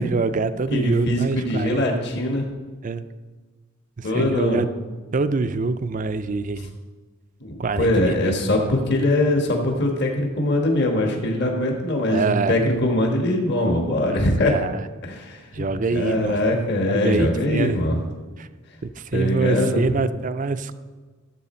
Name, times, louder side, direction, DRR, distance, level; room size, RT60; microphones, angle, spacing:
voice 1, 0.0-1.8 2.8-3.1 4.0-4.7 5.1-6.8 7.6-8.3 12.1-12.6 14.1-14.8 15.5-16.4 16.9-17.8 18.4-18.5 19.0-20.8, right 3 dB, 40° right, 12 dB, 0.4 m, -25 dB
voice 2, 0.7-2.5 4.0-4.6 7.4-14.5 15.0-18.0 19.1-19.8, left 1 dB, 55° left, 2 dB, 1.5 m, -22 dB
12.5 x 7.7 x 4.3 m, 1.4 s
head